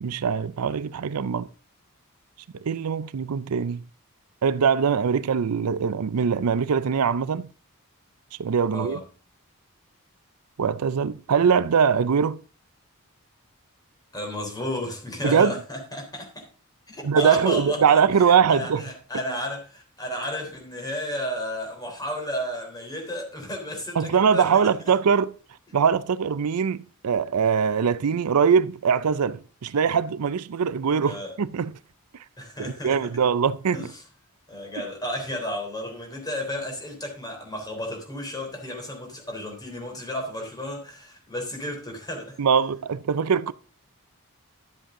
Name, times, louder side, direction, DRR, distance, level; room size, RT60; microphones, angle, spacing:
voice 1, 0.0-1.5 2.5-3.8 4.4-7.5 8.4-9.0 10.6-12.4 15.2-15.6 17.0-18.8 24.0-25.3 25.7-31.7 32.6-33.9 42.4-43.5, right 6 dB, 85° right, 0.5 m, -22 dB
voice 2, 8.7-9.0 14.1-16.5 16.9-24.7 31.0-31.3 32.4-33.1 33.7-34.0 34.5-42.4, equal, 20° left, 3.5 m, -33 dB
12.0 x 7.8 x 3.7 m
head